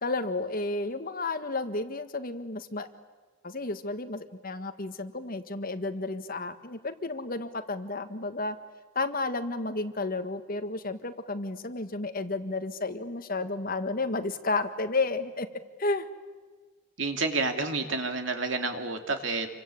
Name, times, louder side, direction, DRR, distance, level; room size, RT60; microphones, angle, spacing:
voice 1, 0.0-2.9 3.4-8.5 8.9-15.5 15.8-16.1, left 3 dB, 45° left, 8 dB, 1.7 m, -32 dB
voice 2, 17.0-19.5, right 3 dB, 65° right, 6 dB, 2.8 m, -29 dB
28.5 x 24.0 x 8.6 m, 1.4 s
head